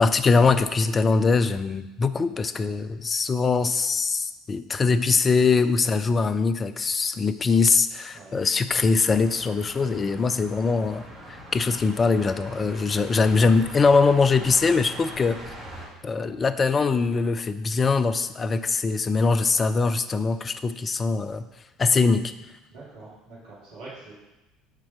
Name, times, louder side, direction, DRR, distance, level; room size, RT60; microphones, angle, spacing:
voice 1, 0.0-15.4 16.0-21.5 21.8-22.3, left 4 dB, 30° left, 12 dB, 0.5 m, -22 dB
sound 1, 8.7-15.9, right 1 dB, 25° right, 2.3 m, -42 dB
voice 2, 22.7-24.1, right 3 dB, 65° right, -8 dB, 2.3 m, -45 dB
6.8 x 4.4 x 5.9 m, 1.0 s
figure-of-eight pair, 60°, 0 cm